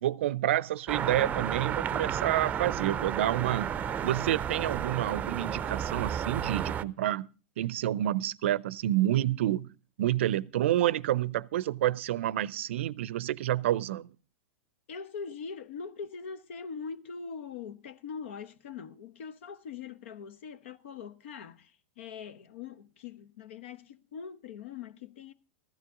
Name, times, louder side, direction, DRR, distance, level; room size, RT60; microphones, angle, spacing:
voice 1, 0.0-7.3 7.6-9.7 10.0-14.1, right 13 dB, 70° right, 0.5 m, -29 dB
sound 1, 0.9-6.8, right 8 dB, 25° right, 0.6 m, -32 dB
voice 2, 14.9-25.3, left 6 dB, 70° left, 1.0 m, -42 dB
15.0 x 12.5 x 3.7 m
hypercardioid pair, 110°, 7 cm